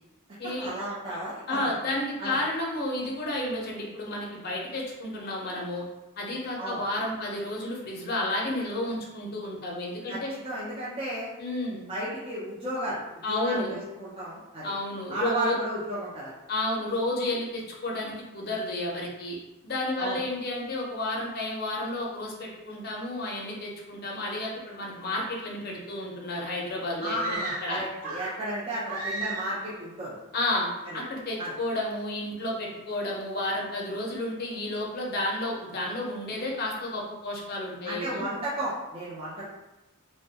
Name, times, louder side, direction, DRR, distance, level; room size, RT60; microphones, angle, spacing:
voice 1, 0.4-1.7 2.2-2.4 6.6-6.8 10.1-11.3 11.9-13.0 13.3-14.7 15.1-16.3 20.0-20.2 27.0-30.1 30.8-31.0 31.4-31.5 37.8-39.5, right 1 dB, 25° right, -8 dB, 0.4 m, -33 dB
voice 2, 1.5-5.8 6.2-10.3 11.4-11.8 13.2-13.7 14.6-15.6 16.5-19.4 19.6-27.8 30.3-38.2, left 1 dB, 45° left, -2 dB, 0.5 m, -31 dB
sound 1, 27.1-28.5 28.9-29.7, right 3 dB, 85° right, 0.5 m, -35 dB
2.2 x 2.1 x 2.7 m, 0.99 s
head